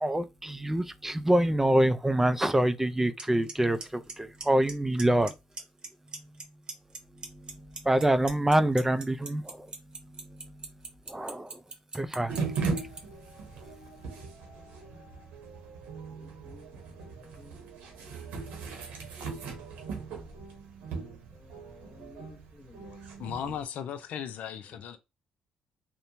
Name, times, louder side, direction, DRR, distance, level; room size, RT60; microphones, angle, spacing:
voice 1, 0.0-5.3 6.1-6.3 7.2-9.7 10.0-10.7 11.1-11.6 11.9-12.4, right 1 dB, 10° right, 0.4 m, -26 dB
Clock, 3.2-3.3 3.5-3.8 4.1-4.7 5.0-5.3 5.6-6.4 6.7-13.0, right 4 dB, 35° right, 0.8 m, -38 dB
sound 1, 12.3-23.6, right 4 dB, 85° right, 0.9 m, -38 dB
voice 2, 16.1-16.7 17.2-17.5 21.3-23.0, left 2 dB, 30° left, 1.0 m, -55 dB
voice 3, 23.2-25.0, left 9 dB, 70° left, 0.4 m, -36 dB
2.9 x 2.1 x 2.6 m
cardioid pair, 75°, 3 cm